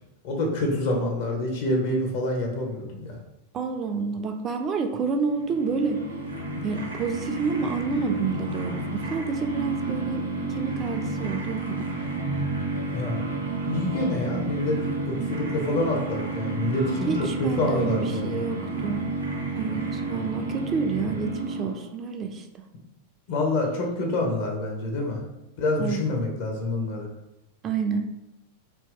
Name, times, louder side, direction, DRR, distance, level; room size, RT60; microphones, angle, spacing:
voice 1, 0.2-3.2 12.9-13.4 13.7-14.8 15.1-17.1 17.4-18.4 23.3-25.2 25.6-27.1, left 2 dB, 55° left, 1 dB, 0.8 m, -27 dB
voice 2, 3.5-6.0 6.6-10.3 10.6-11.9 16.8-19.0 19.5-22.5 25.8-26.1 27.6-28.1, right 4 dB, 30° right, 5 dB, 0.3 m, -29 dB
sound 1, 5.3-22.0, right 3 dB, 85° right, 0.7 m, -31 dB
2.7 x 2.1 x 3.7 m, 0.90 s
figure-of-eight pair, 95°, 0 cm